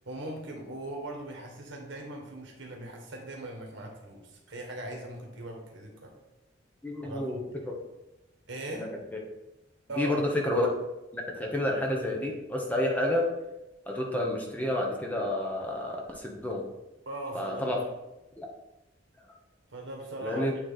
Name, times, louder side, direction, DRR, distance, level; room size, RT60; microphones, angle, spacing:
voice 1, 0.0-6.1 7.0-7.4 8.5-8.9 9.9-10.3 17.0-17.9 19.7-20.5, right 1 dB, 80° right, 1 dB, 1.5 m, -39 dB
voice 2, 6.8-7.7 8.7-9.2 10.0-10.7 11.1-13.3 13.9-16.6 17.3-17.8 18.4-18.5 20.2-20.5, left 1 dB, 10° left, -1 dB, 0.9 m, -30 dB
8.9 x 3.2 x 4.0 m, 0.96 s
head